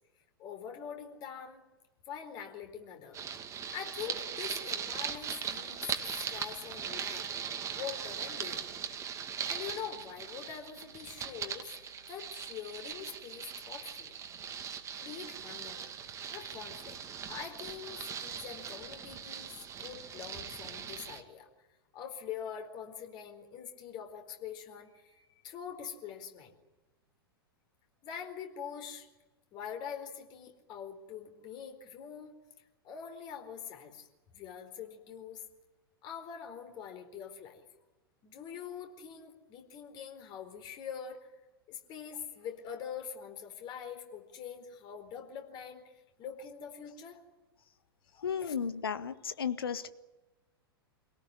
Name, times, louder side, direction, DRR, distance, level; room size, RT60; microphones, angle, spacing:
voice 1, 0.4-1.6 2.1-3.2 3.7-7.3 7.7-8.7 9.4-11.7 12.1-14.2 15.0-15.9 16.3-17.0 17.3-19.5 19.8-21.7 21.9-26.5 28.0-29.1 29.5-32.4 32.8-34.1 34.3-35.4 36.0-37.6 38.2-41.3 41.7-45.9 46.2-47.2 48.0-48.5, left 8 dB, 35° left, 5 dB, 4.3 m, -44 dB
sound 1, 3.1-21.2, right 7 dB, 25° right, 2.4 m, -40 dB
voice 2, 48.2-49.9, left 7 dB, 70° left, 12 dB, 1.5 m, -34 dB
26.0 x 18.5 x 9.9 m, 1.1 s
figure-of-eight pair, 95°, 13 cm